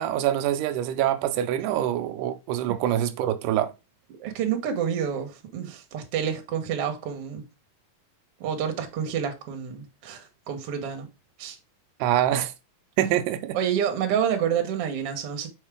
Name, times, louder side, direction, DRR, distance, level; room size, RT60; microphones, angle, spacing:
voice 1, 0.0-3.7 12.0-12.5 13.0-13.6, right 11 dB, 80° right, 2.2 m, -25 dB
voice 2, 4.2-7.4 8.4-11.1 11.4-11.6 13.5-15.5, right 8 dB, 55° right, 1.9 m, -28 dB
6.4 x 5.4 x 3.5 m
omnidirectional pair, 4.0 m